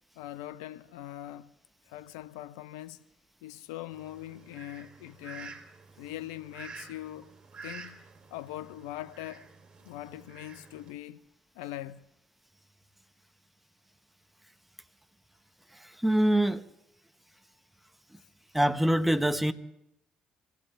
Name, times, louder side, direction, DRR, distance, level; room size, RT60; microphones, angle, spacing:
voice 1, 0.2-1.5 1.9-3.0 3.4-5.6 6.0-7.3 7.6-8.0 8.3-9.5 9.8-11.2 11.5-12.0, left 14 dB, 85° left, 0.6 m, -42 dB
Fowl, 3.9-10.9, right 4 dB, 40° right, 3.2 m, -49 dB
voice 2, 15.8-16.6 18.5-19.5, right 1 dB, 5° right, 1.2 m, -24 dB
26.0 x 16.5 x 3.4 m
hypercardioid pair, 55°, 3 cm